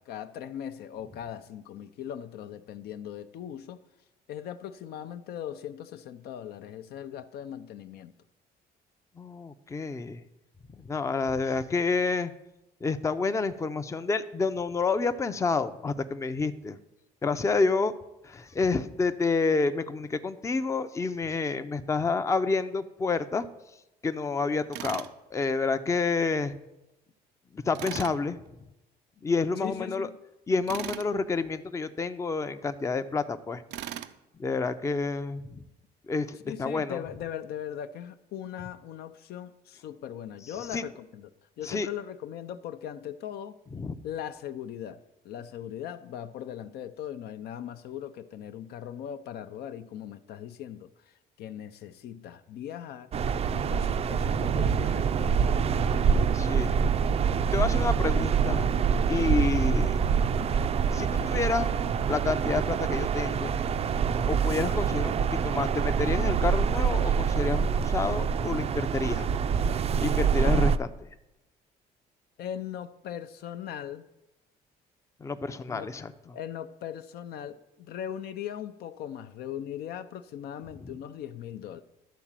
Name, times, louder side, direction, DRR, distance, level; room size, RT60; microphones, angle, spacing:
voice 1, 0.0-3.8 4.3-8.1 29.6-30.2 36.4-41.3 41.6-43.6 44.0-45.0 45.2-53.1 53.5-55.5 72.4-74.1 75.7-75.9 76.3-81.8, left 10 dB, 70° left, 11 dB, 0.6 m, -39 dB
voice 2, 9.2-10.2 10.8-12.3 12.8-16.8 17.2-17.9 18.2-23.5 24.0-25.1 25.3-26.5 27.5-28.4 29.2-30.1 30.5-33.6 34.4-35.6 36.1-37.0 40.7-40.8 41.6-41.9 43.7-44.0 56.3-56.8 57.5-58.7 59.1-60.0 60.9-61.7 62.1-63.5 64.2-69.3 70.0-71.1 75.2-76.1, left 4 dB, 15° left, 11 dB, 0.5 m, -29 dB
Tools, 24.7-25.1 27.7-28.2 30.7-31.1 33.7-34.2, right 12 dB, 90° right, 0.5 m, -37 dB
sound 1, 53.1-70.8, right 6 dB, 35° right, 0.4 m, -25 dB
11.5 x 4.0 x 7.4 m, 0.94 s
cardioid pair, 110°, 17 cm